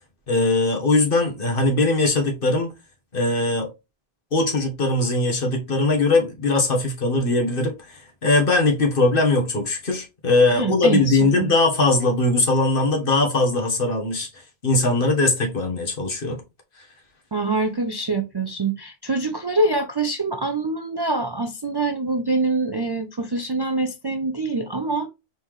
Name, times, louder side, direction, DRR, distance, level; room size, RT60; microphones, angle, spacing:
voice 1, 0.3-2.7 3.1-3.7 4.3-16.4, left 2 dB, 60° left, 1.5 m, -20 dB
voice 2, 10.5-11.5 17.3-25.1, right 3 dB, 35° right, 0.4 m, -25 dB
4.2 x 3.6 x 3.1 m
omnidirectional pair, 1.0 m